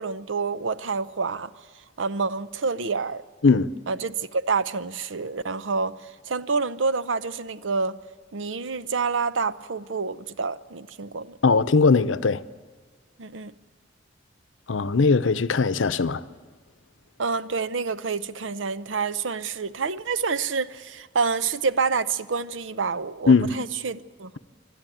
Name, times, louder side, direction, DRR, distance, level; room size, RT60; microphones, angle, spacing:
voice 1, 0.0-1.5 2.0-3.2 3.9-8.0 8.3-11.4 13.2-13.5 17.2-24.4, right 4 dB, 80° right, 0.7 m, -28 dB
voice 2, 11.4-12.4 14.7-16.2 23.3-23.5, left 4 dB, 80° left, 0.7 m, -19 dB
27.0 x 11.5 x 9.2 m
head